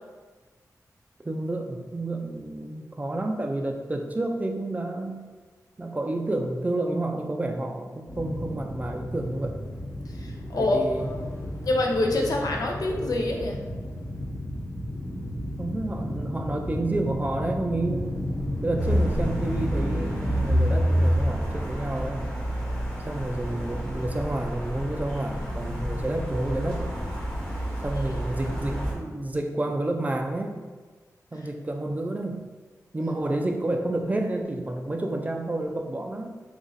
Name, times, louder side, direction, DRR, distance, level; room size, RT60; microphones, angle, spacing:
voice 1, 1.2-5.3 5.8-9.6 10.5-11.1 15.6-18.2 18.6-22.2 23.1-26.9 27.8-30.6 31.3-32.4 32.9-36.3, right 2 dB, 25° right, 3 dB, 0.4 m, -30 dB
sound 1, 8.1-20.6, left 1 dB, 50° left, 1.0 m, -33 dB
voice 2, 10.2-11.1 11.6-13.6 27.9-28.0, left 2 dB, 75° left, 1 dB, 0.5 m, -26 dB
sound 2, 18.8-28.9, equal, 10° left, 0.9 m, -28 dB
2.9 x 2.6 x 3.9 m, 1.4 s
wide cardioid pair, 75°, 6 cm